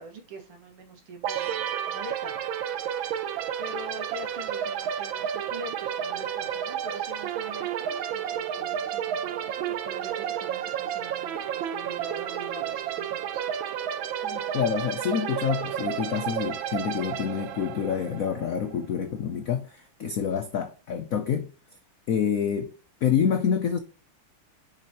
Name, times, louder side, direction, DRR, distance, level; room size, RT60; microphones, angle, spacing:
voice 1, 0.0-2.4 3.6-13.4, right 1 dB, 85° right, 2.8 m, -43 dB
sound 1, 1.2-18.8, right 9 dB, 70° right, 1.4 m, -31 dB
voice 2, 14.2-21.5 22.1-22.7 23.0-23.8, left 7 dB, 80° left, 0.7 m, -27 dB
6.9 x 5.3 x 3.0 m
omnidirectional pair, 2.4 m